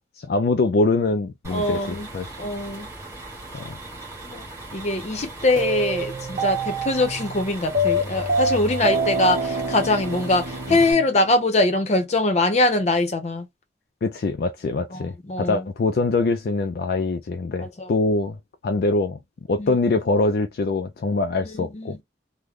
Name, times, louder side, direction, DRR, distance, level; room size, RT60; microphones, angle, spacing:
voice 1, 0.0-2.3 3.5-3.8 10.7-10.8 14.0-18.4 18.6-19.2 19.5-22.0, left 3 dB, 60° left, 0.4 m, -23 dB
sound 1, 1.4-10.9, right 2 dB, 15° right, 1.2 m, -39 dB
voice 2, 1.5-2.1 2.4-2.9 4.2-4.4 4.7-13.5 14.9-15.7 17.6-17.9 19.6-19.7 21.4-22.0, left 2 dB, 40° left, 0.8 m, -23 dB
sound 2, 5.6-11.7, right 1 dB, 45° right, 0.9 m, -26 dB
3.1 x 2.1 x 3.5 m
head